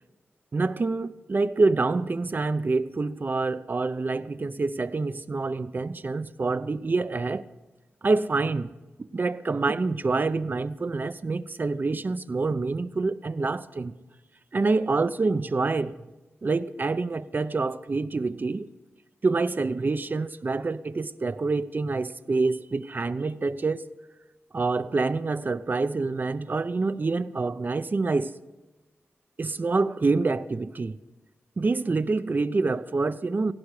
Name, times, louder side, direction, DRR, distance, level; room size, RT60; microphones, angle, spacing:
voice 1, 0.5-7.4 8.0-8.7 9.1-13.9 14.5-16.0 16.4-18.7 19.2-23.8 24.5-28.3 29.4-31.0 31.6-33.5, right 3 dB, 45° right, 0.7 m, -26 dB
18.0 x 16.0 x 4.9 m
wide cardioid pair, 80°, 5 cm